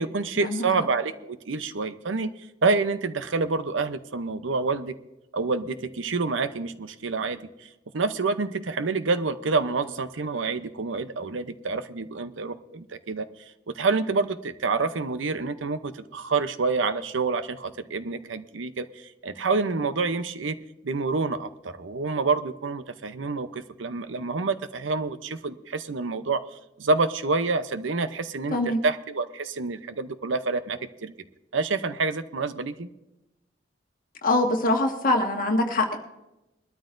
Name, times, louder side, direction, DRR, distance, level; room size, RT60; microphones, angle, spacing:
voice 1, 0.0-2.3 2.6-4.9 5.3-7.7 7.9-13.3 13.7-20.6 20.8-26.4 26.8-31.1 31.5-32.9, right 4 dB, 90° right, 11 dB, 0.7 m, -27 dB
voice 2, 34.2-36.0, left 2 dB, 50° left, 2 dB, 1.6 m, -23 dB
21.5 x 13.0 x 2.6 m, 0.94 s
head